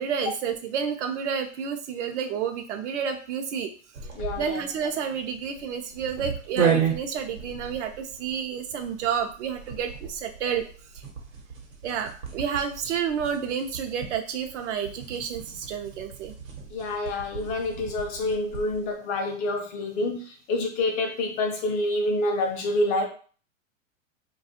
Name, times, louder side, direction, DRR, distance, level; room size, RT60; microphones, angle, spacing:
voice 1, 0.0-3.7 4.4-10.6 11.8-16.3, right 7 dB, 65° right, 6 dB, 0.5 m, -30 dB
sound 1, 3.9-18.9, right 7 dB, 85° right, 0.9 m, -34 dB
voice 2, 4.2-4.6 16.7-23.0, left 2 dB, 25° left, 2 dB, 0.3 m, -27 dB
2.4 x 2.3 x 2.7 m, 0.41 s
hypercardioid pair, 115°, 39 cm